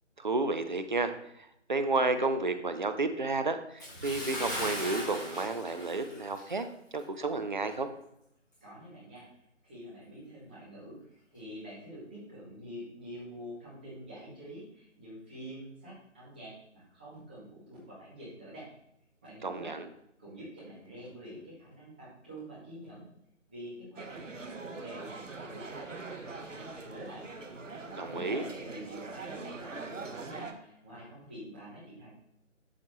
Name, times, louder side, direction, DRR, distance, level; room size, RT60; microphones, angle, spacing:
voice 1, 0.2-1.1 1.7-6.7 6.9-7.9 19.4-19.8 28.0-28.4, right 3 dB, 40° right, 9 dB, 0.5 m, -31 dB
Bathtub (filling or washing) / Splash splatter, 3.8-6.7 7.0-7.2 7.7-7.8, equal, 15° left, 1.3 m, -38 dB
voice 2, 8.6-9.2 9.6-11.0 11.3-18.7 19.2-19.8 20.2-23.0 23.5-27.3 28.0-32.1, equal, 10° right, -9 dB, 1.2 m, -47 dB
sound 1, 24.0-30.5, right 3 dB, 85° right, 1.1 m, -42 dB
12.0 x 4.2 x 3.0 m, 0.78 s
figure-of-eight pair, 165°, 37 cm